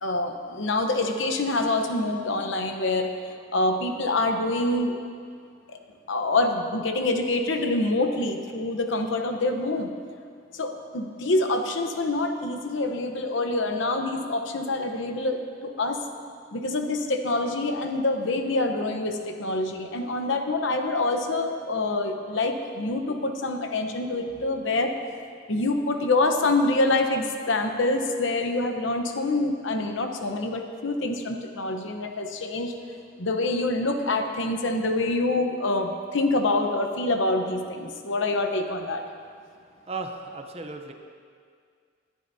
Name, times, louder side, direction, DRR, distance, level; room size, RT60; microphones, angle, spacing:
voice 1, 0.0-3.1 3.5-5.0 6.1-9.9 10.5-16.0 16.5-24.9 25.5-32.7 33.2-39.0, left 2 dB, 75° left, 5 dB, 1.0 m, -26 dB
voice 2, 39.4-40.9, right 3 dB, 30° right, 5 dB, 0.7 m, -36 dB
21.0 x 10.0 x 2.8 m, 2.2 s
head